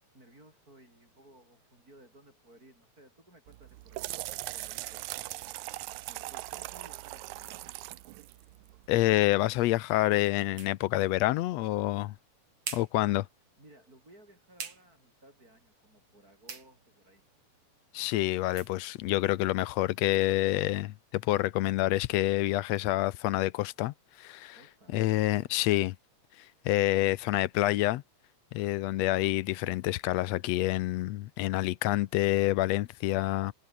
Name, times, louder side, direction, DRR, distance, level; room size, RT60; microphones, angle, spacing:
voice 1, 0.1-7.8 13.6-17.3 24.5-25.0, right 1 dB, 30° right, 8.5 m, -58 dB
sound 1, 3.5-9.0, right 18 dB, 85° right, 2.1 m, -40 dB
voice 2, 8.9-12.1 12.7-13.3 17.9-24.6 24.9-26.0 26.7-28.0 28.5-33.5, left 16 dB, 75° left, 1.7 m, -27 dB
sound 2, 10.0-20.3, right 6 dB, 50° right, 3.9 m, -49 dB
omnidirectional pair, 3.3 m